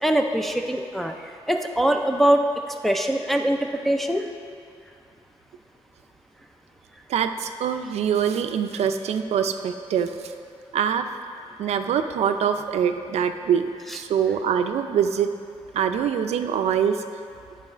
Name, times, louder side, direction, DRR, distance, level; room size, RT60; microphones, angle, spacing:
voice 1, 0.0-4.3, right 1 dB, ahead, 3 dB, 0.4 m, -23 dB
voice 2, 7.1-10.3 10.7-11.1 11.6-15.3 15.7-17.0, right 8 dB, 85° right, 8 dB, 0.4 m, -24 dB
10.5 x 4.0 x 5.0 m, 2.3 s
wide cardioid pair, 165°, 11 cm